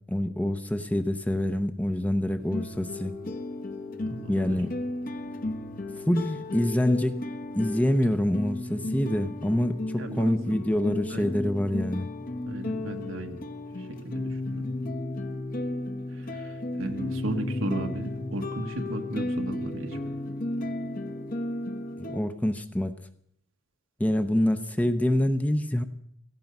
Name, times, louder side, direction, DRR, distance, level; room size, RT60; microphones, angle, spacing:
voice 1, 0.1-3.2 4.3-4.7 6.1-7.2 7.5-12.1 22.0-22.9 24.0-25.8, left 1 dB, 5° left, 9 dB, 0.7 m, -26 dB
sound 1, 2.4-22.2, left 2 dB, 45° left, 1.1 m, -34 dB
voice 2, 4.0-4.6 10.0-10.5 11.1-11.3 12.5-13.4 13.8-14.7 16.1-20.0, right 1 dB, 80° right, 4 dB, 1.6 m, -35 dB
16.5 x 15.5 x 5.4 m, 0.68 s
head